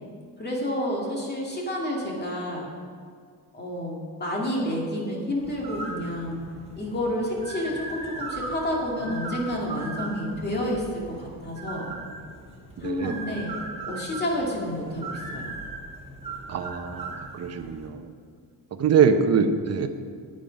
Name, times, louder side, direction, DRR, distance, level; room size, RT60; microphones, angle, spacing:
voice 1, 0.4-2.7 3.5-6.4 6.8-11.9 12.8-13.5 13.9-15.5, equal, 25° left, -3 dB, 2.2 m, -29 dB
sound 1, 5.4-17.9, right 2 dB, 15° right, 2.0 m, -38 dB
voice 2, 12.8-13.1 16.5-18.1 18.8-19.9, right 6 dB, 40° right, 7 dB, 0.8 m, -23 dB
9.2 x 8.8 x 5.2 m, 2.1 s
cardioid pair, 140°, 39 cm